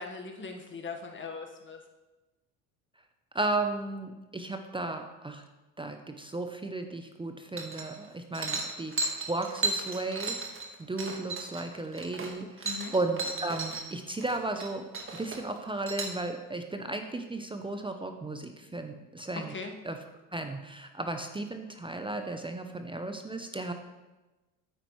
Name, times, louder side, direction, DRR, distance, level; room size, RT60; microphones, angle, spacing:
voice 1, 0.0-1.8 12.6-12.9 19.5-19.7, left 4 dB, 25° left, 3 dB, 1.5 m, -40 dB
voice 2, 3.3-5.4 5.8-10.4 10.9-14.9 15.1-19.5 19.8-20.0 20.3-23.7, right 2 dB, 10° right, 6 dB, 0.7 m, -34 dB
sound 1, 7.6-8.1 8.3-13.8 14.1-14.7 14.9-16.2, right 3 dB, 30° right, 1.7 m, -34 dB
9.0 x 8.8 x 3.2 m, 1.1 s
hypercardioid pair, 70°, 44 cm